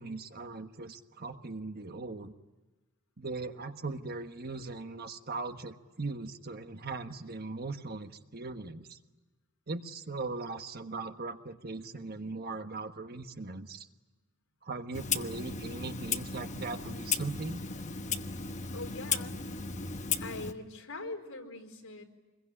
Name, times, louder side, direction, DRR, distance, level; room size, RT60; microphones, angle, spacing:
voice 1, 0.0-2.3 3.2-9.0 9.7-13.9 14.6-17.6, right 3 dB, 45° right, 7 dB, 1.3 m, -39 dB
Clock, 14.9-20.5, left 6 dB, 35° left, 1.1 m, -35 dB
voice 2, 18.7-19.4 20.2-22.0, left 2 dB, 70° left, 2 dB, 4.6 m, -42 dB
26.5 x 22.0 x 9.9 m, 1.2 s
head